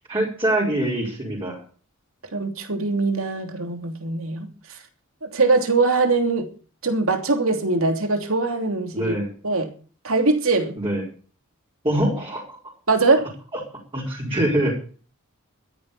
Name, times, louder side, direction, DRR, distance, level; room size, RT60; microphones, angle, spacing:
voice 1, 0.1-1.6 8.9-9.3 10.8-11.0 11.8-12.6 13.9-14.8, right 1 dB, 25° right, 5.0 m, -24 dB
voice 2, 2.3-4.8 5.2-6.5 6.8-9.1 9.4-9.7 10.0-10.8 12.9-13.3, right 3 dB, 70° right, 3.0 m, -22 dB
13.0 x 10.5 x 6.9 m
head